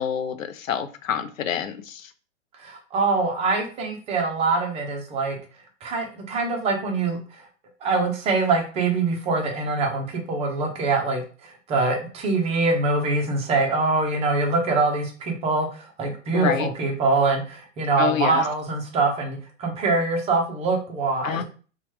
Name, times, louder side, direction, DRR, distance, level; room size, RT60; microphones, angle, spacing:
voice 1, 0.0-2.1 16.3-16.7 18.0-18.4 21.2-21.4, left 8 dB, 85° left, 10 dB, 0.5 m, -27 dB
voice 2, 2.6-5.4 5.8-7.5 7.8-21.4, right 3 dB, 15° right, 1 dB, 0.6 m, -24 dB
2.9 x 2.3 x 3.0 m, 0.38 s
hypercardioid pair, 120°, 39 cm